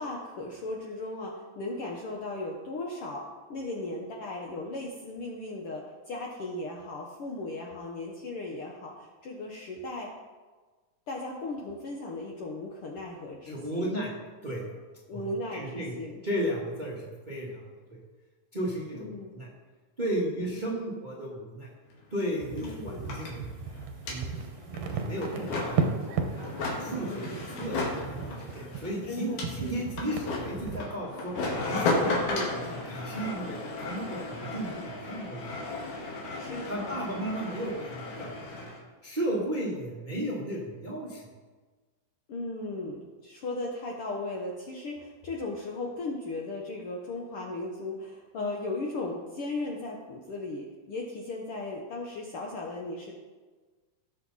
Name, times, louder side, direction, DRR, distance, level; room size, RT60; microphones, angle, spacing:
voice 1, 0.0-3.2 3.5-10.1 11.1-13.9 15.1-16.2 18.9-19.3 20.4-20.8 22.6-23.1 26.8-27.4 29.1-29.8 36.3-37.0 42.3-53.1, left 2 dB, 60° left, -1 dB, 1.5 m, -37 dB
voice 2, 13.4-14.1 14.4-14.7 15.1-15.2 15.5-15.9 16.2-17.6 17.9-18.0 18.5-19.5 20.0-21.7 22.1-23.8 24.1-24.4 24.9-25.8 26.8-27.8 28.1-31.3 31.7-35.5 36.6-38.3 38.6-38.7 39.0-41.2, right 1 dB, 25° right, -3 dB, 1.1 m, -34 dB
sound 1, 21.9-22.0 22.2-38.8, left 2 dB, 80° left, 3.4 m, -35 dB
sound 2, 22.4-30.8, right 5 dB, 85° right, 2.7 m, -35 dB
18.5 x 6.7 x 4.1 m, 1.3 s
omnidirectional pair, 3.6 m